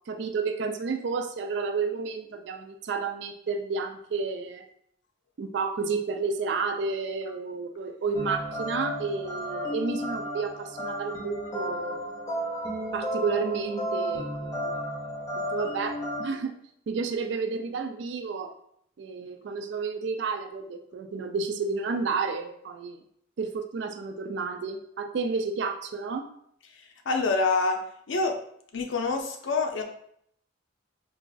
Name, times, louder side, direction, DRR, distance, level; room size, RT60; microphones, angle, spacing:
voice 1, 0.1-4.7 5.4-12.0 12.9-14.7 15.3-16.5 16.9-18.5 19.0-23.0 23.4-26.3, right 4 dB, 65° right, 6 dB, 0.3 m, -31 dB
sound 1, 8.1-16.3, equal, 20° left, 0.6 m, -33 dB
voice 2, 27.1-27.8 28.1-28.4 28.7-29.8, left 3 dB, 80° left, 4 dB, 0.5 m, -26 dB
4.7 x 2.5 x 2.3 m, 0.68 s
head